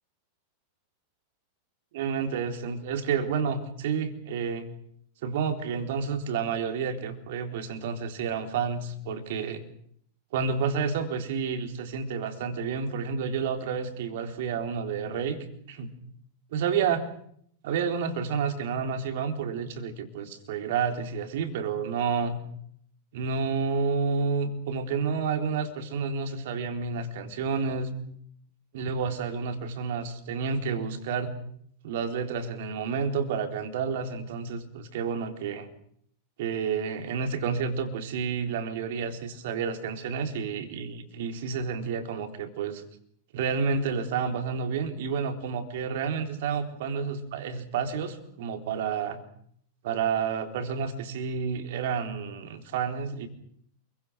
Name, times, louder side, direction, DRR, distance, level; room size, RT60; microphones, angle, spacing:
voice 1, 1.9-4.7 5.2-9.6 10.3-15.4 15.7-15.9 16.5-17.1 17.6-22.4 23.1-27.9 28.7-31.4 31.8-35.7 36.4-42.8 43.3-49.2 49.8-53.3, right 6 dB, 55° right, 6 dB, 3.9 m, -30 dB
29.0 x 23.5 x 6.4 m, 0.66 s
figure-of-eight pair, 90°, 0 cm